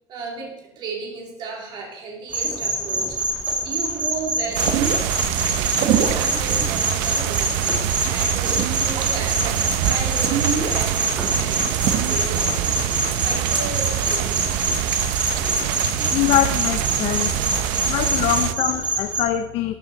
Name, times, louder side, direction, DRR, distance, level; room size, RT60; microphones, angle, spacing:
voice 1, 0.1-3.2 3.6-4.9 5.2-5.4 5.7-12.8 13.2-14.4, right 4 dB, 40° right, -1 dB, 2.6 m, -35 dB
sound 1, 2.3-19.2, right 2 dB, 10° right, 1.8 m, -25 dB
sound 2, 4.5-13.0, right 8 dB, 70° right, 1.1 m, -28 dB
sound 3, 4.5-18.5, right 12 dB, 85° right, 0.6 m, -25 dB
voice 2, 16.1-17.3 17.8-19.8, left 12 dB, 55° left, 9 dB, 0.6 m, -23 dB
12.5 x 8.8 x 3.9 m, 0.94 s
cardioid pair, 175°, 12 cm